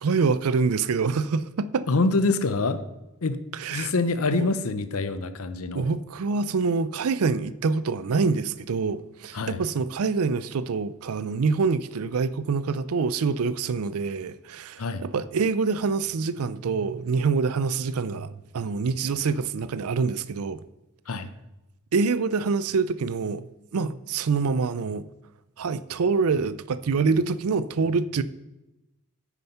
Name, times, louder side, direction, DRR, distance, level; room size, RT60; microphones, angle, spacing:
voice 1, 0.0-1.9 3.5-3.9 4.3-4.5 5.7-20.6 21.9-23.5 23.7-25.0 25.6-28.2, right 4 dB, 80° right, 0.5 m, -26 dB
voice 2, 1.9-2.8 3.2-3.4 3.7-5.8 9.3-9.6 14.8-15.1 21.1-21.3, left 3 dB, 80° left, 0.7 m, -25 dB
8.8 x 7.0 x 5.6 m
head